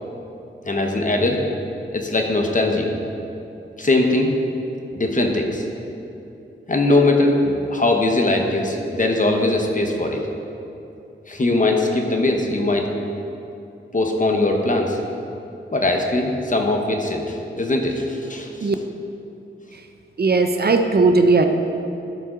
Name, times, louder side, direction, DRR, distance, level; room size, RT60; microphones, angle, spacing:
voice 1, 0.6-1.4 1.9-3.0 3.8-4.3 4.9-5.7 6.7-10.2 11.3-12.9 13.9-15.0 15.7-18.7, left 2 dB, 40° left, 2 dB, 1.0 m, -20 dB
voice 2, 20.2-21.5, right 3 dB, 50° right, 6 dB, 0.5 m, -17 dB
13.5 x 5.6 x 3.8 m, 2.8 s
wide cardioid pair, 95°, 21 cm